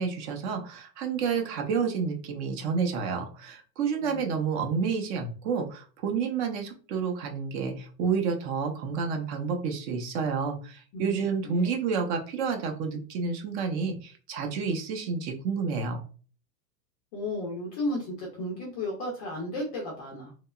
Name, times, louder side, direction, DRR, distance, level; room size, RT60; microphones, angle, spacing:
voice 1, 0.0-16.0, right 5 dB, 45° right, 4 dB, 0.6 m, -30 dB
voice 2, 10.9-11.7 17.1-20.3, left 1 dB, 25° left, -1 dB, 0.4 m, -34 dB
2.8 x 2.2 x 2.2 m, 0.39 s
supercardioid pair, 135°, 48 cm